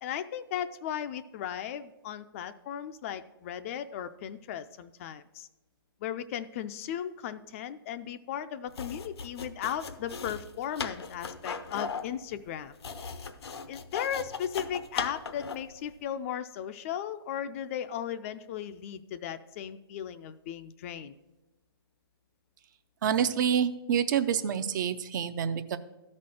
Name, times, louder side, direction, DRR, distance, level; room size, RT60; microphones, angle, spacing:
voice 1, 0.0-5.5 6.0-12.7 13.7-21.1, left 9 dB, 35° left, 11 dB, 0.4 m, -36 dB
sound 1, 8.7-15.7, left 5 dB, 85° left, 0.7 m, -38 dB
voice 2, 23.0-25.8, right 8 dB, 50° right, 11 dB, 0.5 m, -27 dB
12.5 x 4.3 x 6.3 m, 1.1 s
hypercardioid pair, 145°, 13 cm